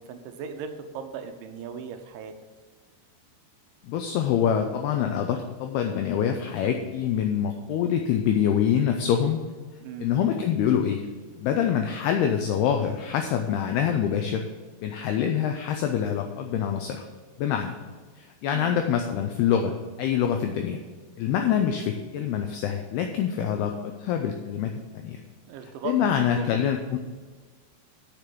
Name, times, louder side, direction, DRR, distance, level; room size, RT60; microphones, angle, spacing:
voice 1, 0.0-2.3 9.8-10.2 18.5-18.8 25.5-26.6, right 6 dB, 85° right, 7 dB, 3.2 m, -38 dB
voice 2, 3.8-9.5 10.0-11.1 11.4-14.5 14.8-17.1 17.4-17.8 18.2-20.8 21.2-25.2 25.8-27.0, left 8 dB, 85° left, 5 dB, 2.3 m, -25 dB
7.8 x 6.8 x 7.0 m, 1.4 s
omnidirectional pair, 5.3 m